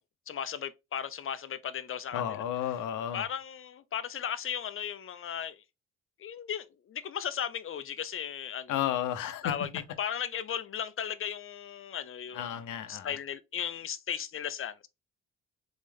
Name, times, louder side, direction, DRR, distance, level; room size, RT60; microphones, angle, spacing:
voice 1, 0.3-2.4 3.1-5.6 6.2-8.8 9.4-12.5 12.9-14.9, left 8 dB, 45° left, 0.6 m, -36 dB
voice 2, 2.1-3.2 8.7-9.6 12.3-13.1, left 10 dB, 85° left, 0.9 m, -32 dB
4.0 x 3.5 x 3.6 m
cardioid pair, 90°, 30 cm